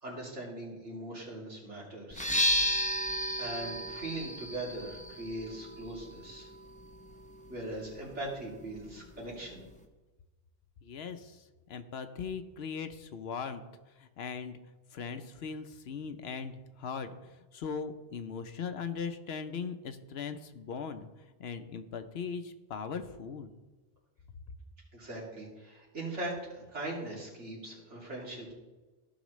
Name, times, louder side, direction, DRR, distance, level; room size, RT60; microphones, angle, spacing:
voice 1, 0.0-2.3 3.4-6.5 7.5-9.6 24.9-28.5, right 1 dB, 75° right, -4 dB, 2.9 m, -40 dB
sound 1, 2.1-9.8, equal, 10° left, 0.6 m, -35 dB
voice 2, 10.8-13.6 14.0-14.6 14.9-21.1 21.4-23.5, left 6 dB, 65° left, 9 dB, 0.9 m, -39 dB
15.5 x 6.0 x 3.1 m, 1.2 s
omnidirectional pair, 1.2 m